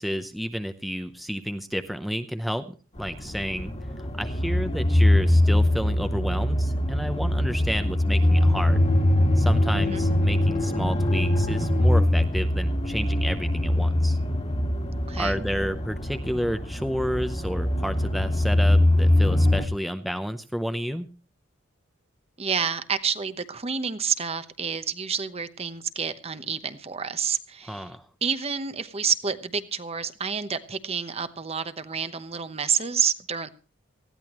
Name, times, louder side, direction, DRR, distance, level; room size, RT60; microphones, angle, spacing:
voice 1, 0.0-3.7 4.2-8.8 9.4-14.2 15.2-21.1 27.6-28.0, equal, ahead, 8 dB, 0.7 m, -31 dB
sound 1, 3.0-19.6, left 1 dB, 35° left, 1.8 m, -22 dB
voice 2, 9.7-10.1 14.9-15.4 22.4-27.9 28.2-33.5, right 6 dB, 30° right, 11 dB, 0.9 m, -29 dB
19.5 x 15.0 x 3.1 m, 0.35 s
head